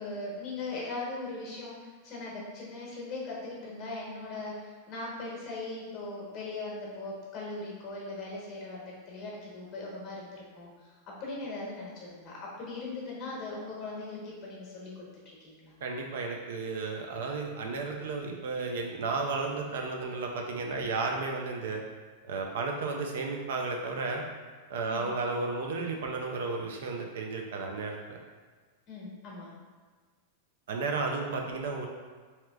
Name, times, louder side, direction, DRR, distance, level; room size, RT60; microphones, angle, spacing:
voice 1, 0.0-15.7 24.9-25.1 28.9-29.5, left 2 dB, 30° left, -5 dB, 1.0 m, -39 dB
voice 2, 15.8-21.8 22.2-24.2 24.7-28.2 30.7-31.9, right 3 dB, 80° right, 2 dB, 0.5 m, -33 dB
3.3 x 2.8 x 2.3 m, 1.5 s
supercardioid pair, 150°, 0 cm